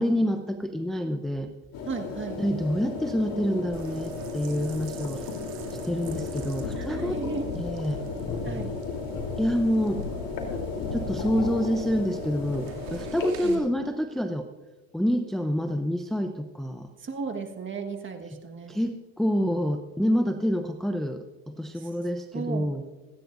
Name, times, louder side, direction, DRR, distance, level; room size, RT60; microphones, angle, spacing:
voice 1, 0.0-1.5 2.4-5.3 5.7-7.2 7.6-8.0 9.4-10.1 10.9-14.5 14.9-16.9 18.7-22.8, equal, ahead, 5 dB, 0.7 m, -27 dB
sound 1, 1.7-13.3, left 3 dB, 50° left, 3.4 m, -36 dB
voice 2, 1.9-2.4 6.7-7.5 8.4-8.8 13.4-13.6 17.0-18.8 21.7-21.9 22.3-22.8, right 5 dB, 30° right, 4 dB, 1.6 m, -35 dB
sound 2, 3.7-13.6, right 8 dB, 80° right, 2.8 m, -44 dB
sound 3, 6.0-11.6 12.5-12.6, left 5 dB, 80° left, 2.7 m, -36 dB
28.5 x 10.0 x 2.6 m, 1.3 s
supercardioid pair, 90°, 41 cm